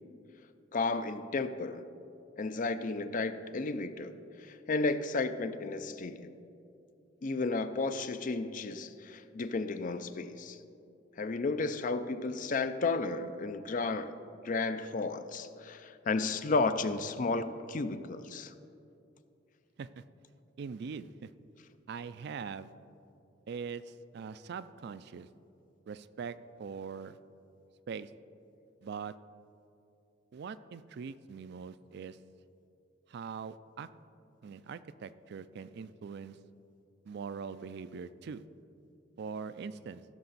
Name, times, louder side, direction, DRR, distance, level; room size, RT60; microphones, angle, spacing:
voice 1, 0.7-1.9 2.4-6.3 7.2-10.6 11.2-14.2 14.4-18.5, left 3 dB, 45° left, 11 dB, 0.5 m, -33 dB
voice 2, 20.6-21.3 21.9-22.7 23.5-25.3 25.9-27.2 27.9-28.1 28.8-29.1 30.3-32.2 33.1-33.9 34.4-36.4 37.0-38.4 39.2-40.0, right 6 dB, 60° right, 14 dB, 0.4 m, -42 dB
16.0 x 6.5 x 4.0 m, 2.7 s
head